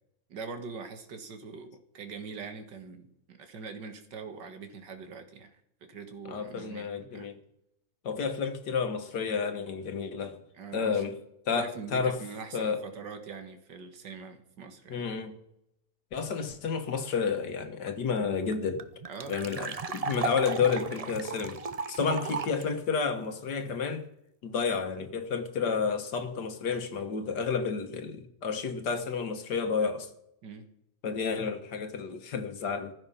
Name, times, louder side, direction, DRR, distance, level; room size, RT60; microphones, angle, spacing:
voice 1, 0.3-5.6 5.8-7.3 10.6-11.0 11.6-15.0 19.1-19.6 30.4-30.7, right 5 dB, 90° right, 2.2 m, -43 dB
voice 2, 6.3-7.4 8.0-10.4 10.7-11.2 11.5-12.2 12.5-12.8 14.9-15.4 16.1-18.8 19.3-21.6 21.9-24.1 24.4-30.1 31.0-32.9, left 5 dB, 75° left, 2.0 m, -31 dB
sound 1, 17.9-18.0 18.1-18.2 18.5-22.6, right 5 dB, 65° right, 0.3 m, -35 dB
15.0 x 12.0 x 5.6 m
omnidirectional pair, 1.8 m